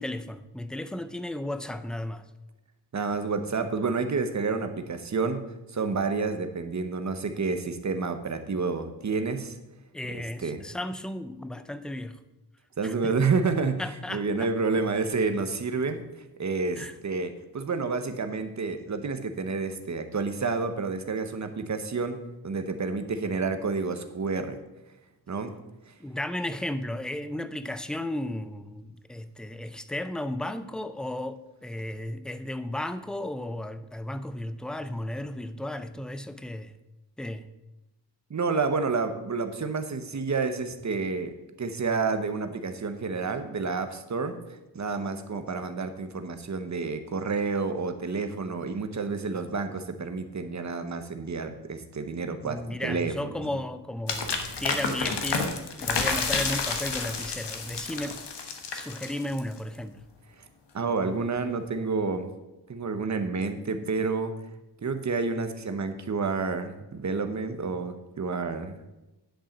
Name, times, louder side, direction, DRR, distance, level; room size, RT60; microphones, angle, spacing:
voice 1, 0.0-2.3 9.9-12.2 12.8-13.1 13.8-14.5 16.8-16.9 26.0-36.7 37.2-37.5 52.4-58.3 58.7-60.0, left 1 dB, ahead, 12 dB, 0.4 m, -34 dB
voice 2, 2.9-5.4 5.7-9.6 10.1-10.6 12.8-13.8 14.1-16.0 16.4-22.2 22.4-24.6 25.3-25.5 25.9-26.0 38.3-53.4 60.7-62.3 62.7-64.3 64.8-68.8, right 4 dB, 45° right, 8 dB, 0.9 m, -29 dB
sound 1, 54.1-59.6, left 4 dB, 80° left, 1.3 m, -30 dB
10.0 x 5.4 x 7.3 m, 1.0 s
wide cardioid pair, 155°, 41 cm